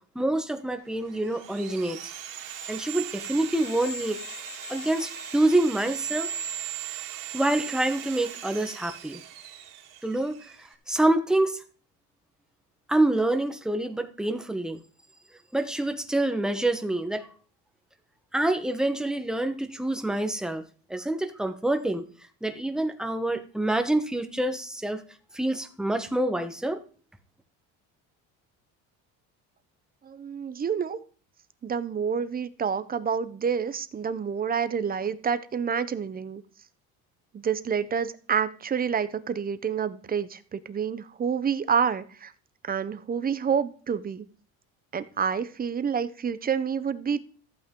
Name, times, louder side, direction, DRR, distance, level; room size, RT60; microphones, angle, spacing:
voice 1, 0.1-2.1 2.7-4.2 4.7-6.3 7.3-9.2 10.0-10.5 10.9-11.6 12.9-14.8 15.5-17.3 18.3-20.6 20.9-22.1 22.4-25.0 25.3-26.8, right 1 dB, ahead, 7 dB, 1.2 m, -26 dB
Sawing, 0.9-10.7, right 8 dB, 70° right, 2.7 m, -38 dB
voice 2, 30.0-31.0 31.6-36.4 37.3-42.3 42.6-44.2 44.9-47.2, right 7 dB, 25° right, 13 dB, 0.9 m, -28 dB
14.5 x 8.6 x 3.8 m, 0.41 s
cardioid pair, 120°, 34 cm